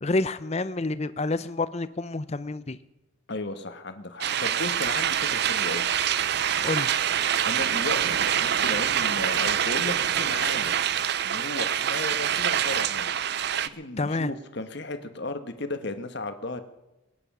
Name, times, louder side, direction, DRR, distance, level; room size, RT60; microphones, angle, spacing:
voice 1, 0.0-2.8 6.6-6.9 14.0-14.3, left 2 dB, 30° left, 15 dB, 0.6 m, -28 dB
voice 2, 3.3-5.9 7.4-10.8 11.2-13.1 13.7-16.6, left 2 dB, 55° left, 9 dB, 1.3 m, -35 dB
sound 1, 4.2-13.7, right 9 dB, 50° right, 0.5 m, -25 dB
22.5 x 9.6 x 6.1 m, 1.0 s
head